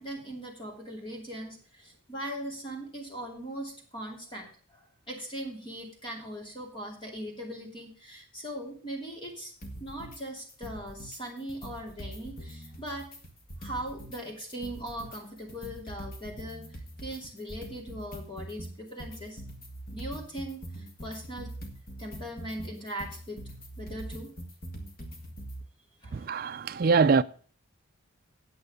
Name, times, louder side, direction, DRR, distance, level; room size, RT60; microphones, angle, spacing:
voice 1, 0.0-9.5 9.8-13.1 13.6-19.4 19.9-21.5 22.0-23.4 23.8-24.3 26.0-26.3, right 1 dB, 20° left, 2.7 m, -40 dB
sound 1, 9.6-10.2 10.5-11.2 11.5-14.2 14.5-25.6, right 1 dB, 45° left, 1.9 m, -43 dB
voice 2, 26.1-27.2, right 4 dB, 40° right, 0.4 m, -23 dB
9.3 x 7.9 x 4.9 m
head